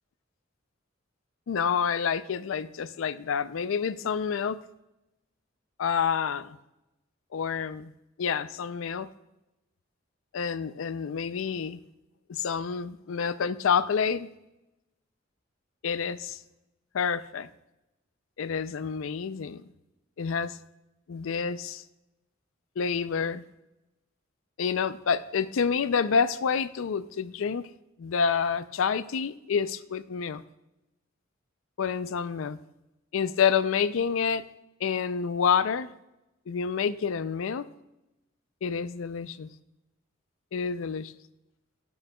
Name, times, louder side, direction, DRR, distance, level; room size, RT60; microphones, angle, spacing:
voice 1, 1.5-4.6 5.8-6.6 7.3-7.9 8.2-9.1 10.3-11.8 12.3-14.3 15.8-16.4 16.9-17.5 18.4-19.6 20.2-20.6 21.1-21.8 22.8-23.4 24.6-27.7 28.0-30.4 31.8-32.6 33.1-34.4 34.8-35.9 36.5-37.7 38.6-39.5 40.5-41.1, left 6 dB, 85° left, 15 dB, 0.4 m, -28 dB
18.5 x 6.3 x 2.3 m, 0.94 s
head